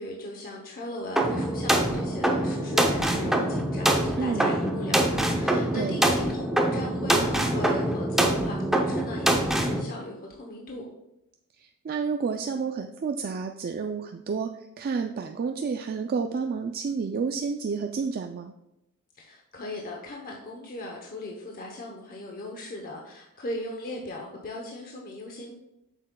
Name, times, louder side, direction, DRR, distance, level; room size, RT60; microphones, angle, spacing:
voice 1, 0.0-10.9 19.1-25.5, left 1 dB, 40° left, 0 dB, 0.8 m, -38 dB
sound 1, 1.2-9.8, right 1 dB, ahead, 0.6 m, -25 dB
voice 2, 4.2-4.5 5.7-6.0 11.6-14.5 14.8-18.5, right 5 dB, 45° right, 5 dB, 0.3 m, -30 dB
7.7 x 6.3 x 2.2 m, 0.87 s
head